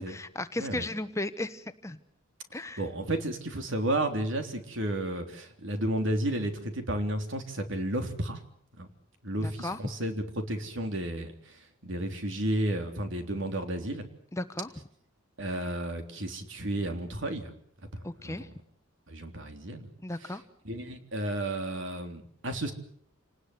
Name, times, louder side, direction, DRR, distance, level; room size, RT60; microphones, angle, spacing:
voice 1, 0.0-2.0 2.5-2.8 9.4-9.8 14.3-14.7 18.0-18.5 20.0-20.4, left 2 dB, 15° left, 10 dB, 1.1 m, -35 dB
voice 2, 2.8-8.4 8.8-8.9 9.2-11.3 11.8-14.0 15.4-17.5 17.9-18.4 19.1-19.9 20.6-22.7, right 1 dB, 65° right, 6 dB, 3.6 m, -32 dB
28.0 x 19.5 x 8.0 m, 0.65 s
head